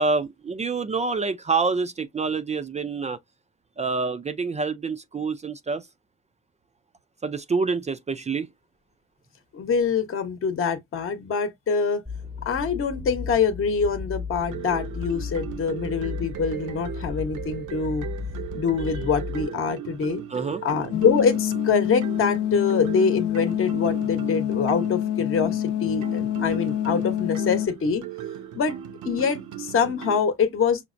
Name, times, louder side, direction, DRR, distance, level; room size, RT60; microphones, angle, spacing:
voice 1, 0.0-3.2 3.8-5.9 7.2-8.5 20.3-20.6, right 4 dB, 25° right, 0.3 m, -27 dB
voice 2, 9.5-12.0 12.4-18.1 18.5-20.2 20.6-28.0 28.5-28.8 29.0-30.9, left 5 dB, 45° left, 0.9 m, -25 dB
sound 1, 12.1-19.4, left 5 dB, 5° left, 0.7 m, -35 dB
sound 2, 14.4-30.2, right 10 dB, 80° right, 0.7 m, -37 dB
sound 3, 20.9-27.7, left 11 dB, 70° left, 0.6 m, -26 dB
5.7 x 2.0 x 2.5 m
cardioid pair, 90°, 30 cm